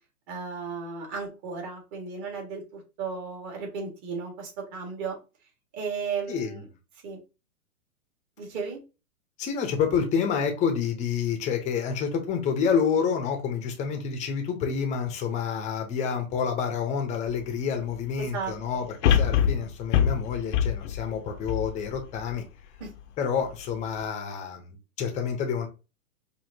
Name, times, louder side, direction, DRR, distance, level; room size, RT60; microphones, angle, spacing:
voice 1, 0.3-5.2 5.7-6.7 7.0-7.2 8.4-8.8 18.2-18.5 22.8-22.9, right 5 dB, 35° right, 1 dB, 1.7 m, -34 dB
voice 2, 6.3-6.6 9.4-22.4 23.2-25.7, left 6 dB, 15° left, 5 dB, 0.7 m, -28 dB
sound 1, 17.3-17.4 19.0-22.4 22.9-23.0, left 9 dB, 60° left, 0.6 m, -24 dB
4.8 x 2.7 x 2.7 m, 0.30 s
hypercardioid pair, 135°, 44 cm